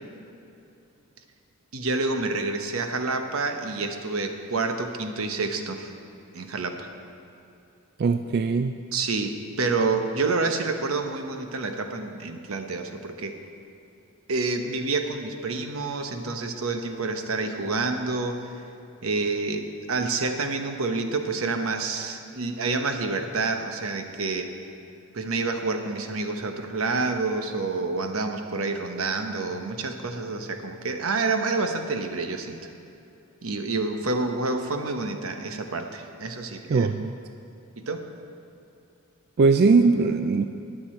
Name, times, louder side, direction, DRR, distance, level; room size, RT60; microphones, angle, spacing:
voice 1, 1.7-5.9 6.3-6.9 8.9-13.4 14.3-18.5 19.0-24.5 25.1-32.6 33.4-36.9 37.8-38.1, right 3 dB, 85° right, 6 dB, 1.0 m, -28 dB
voice 2, 8.0-8.7 36.7-37.1 39.4-40.4, right 4 dB, 50° right, 8 dB, 0.3 m, -20 dB
20.0 x 6.9 x 4.4 m, 2.7 s
head